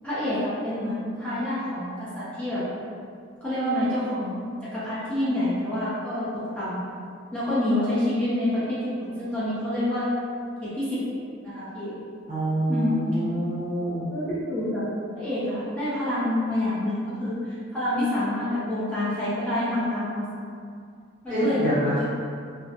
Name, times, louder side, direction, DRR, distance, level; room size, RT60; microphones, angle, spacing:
voice 1, 0.0-2.6 3.4-4.4 4.7-6.8 7.3-10.1 10.6-11.0 11.4-11.9 12.7-13.0 14.1-14.8 15.1-20.2 21.2-21.7, left 1 dB, 5° left, -12 dB, 0.5 m, -27 dB
voice 2, 12.3-14.1 21.3-22.1, right 1 dB, 40° right, -10 dB, 0.9 m, -26 dB
2.5 x 2.0 x 2.6 m, 2.3 s
head